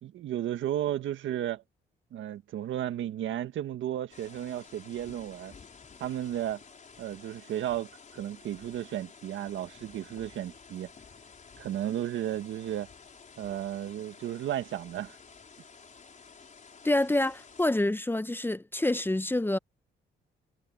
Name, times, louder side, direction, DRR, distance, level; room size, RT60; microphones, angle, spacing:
voice 1, 0.0-1.6 2.1-5.5 6.0-6.6 7.0-10.9 11.6-12.9 13.4-15.2, right 11 dB, 75° right, 1.7 m, -34 dB
sound 1, 4.1-17.7, left 5 dB, 40° left, 4.7 m, -52 dB
voice 2, 16.8-19.6, left 1 dB, 10° left, 0.8 m, -27 dB
cardioid pair, 90°, 20 cm